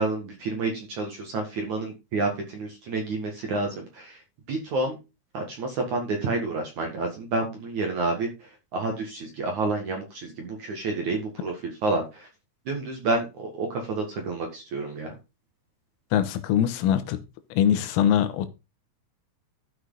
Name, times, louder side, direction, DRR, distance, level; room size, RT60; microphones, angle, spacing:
voice 1, 0.0-4.2 4.5-5.0 5.3-12.3 12.7-15.1, right 3 dB, 55° right, 2.2 m, -29 dB
voice 2, 16.1-17.2 17.5-18.5, left 10 dB, 85° left, 3.7 m, -22 dB
13.0 x 6.3 x 3.9 m
omnidirectional pair, 5.9 m